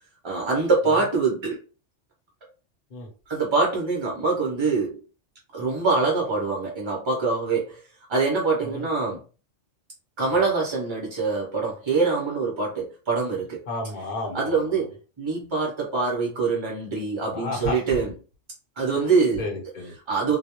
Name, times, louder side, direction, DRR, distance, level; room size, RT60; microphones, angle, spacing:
voice 1, 0.2-1.6 3.3-5.0 5.5-7.8 8.1-9.2 10.2-13.6 14.3-14.9 15.2-18.1 18.8-19.4 20.1-20.4, right 4 dB, 40° right, 0.4 m, -24 dB
voice 2, 13.7-14.7 17.3-18.0 18.9-19.9, left 2 dB, 45° left, 0.9 m, -33 dB
2.2 x 2.0 x 2.8 m
omnidirectional pair, 1.2 m